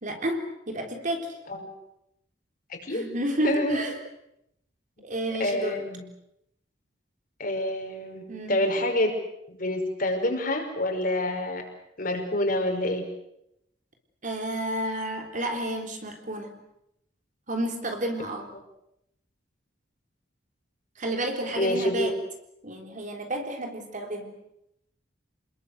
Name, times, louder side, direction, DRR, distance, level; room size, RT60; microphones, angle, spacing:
voice 1, 0.0-1.4 2.9-3.9 5.0-5.8 8.3-8.6 14.2-16.6 17.5-18.5 21.0-22.2 22.6-24.4, right 1 dB, 45° right, 4 dB, 3.8 m, -31 dB
voice 2, 2.7-3.1 3.4-3.8 5.4-6.0 7.4-9.1 9.5-11.6 12.0-13.0 21.6-22.1, left 1 dB, 50° left, 3 dB, 5.5 m, -27 dB
28.0 x 21.0 x 8.1 m, 0.80 s
head